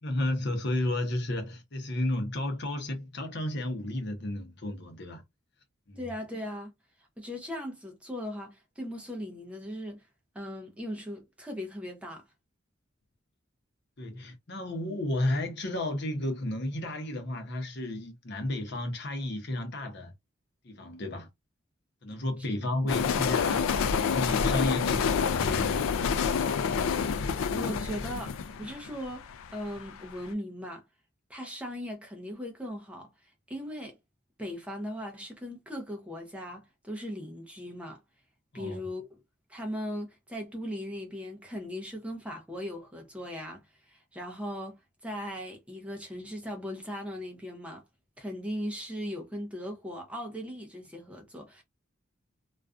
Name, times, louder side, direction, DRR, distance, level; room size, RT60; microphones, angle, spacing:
voice 1, 0.0-5.2 5.9-6.0 14.0-20.1 20.6-21.3 22.0-23.7 24.0-25.8 38.5-38.8, left 1 dB, 55° left, 0.7 m, -32 dB
voice 2, 6.0-6.7 7.2-10.1 10.3-12.2 23.5-23.8 27.5-30.8 31.3-34.0 34.4-38.0 38.5-39.2 39.5-47.8 48.2-51.6, equal, 5° right, 0.5 m, -38 dB
sound 1, 22.9-29.9, left 6 dB, 85° left, 0.3 m, -28 dB
2.4 x 2.3 x 2.4 m
head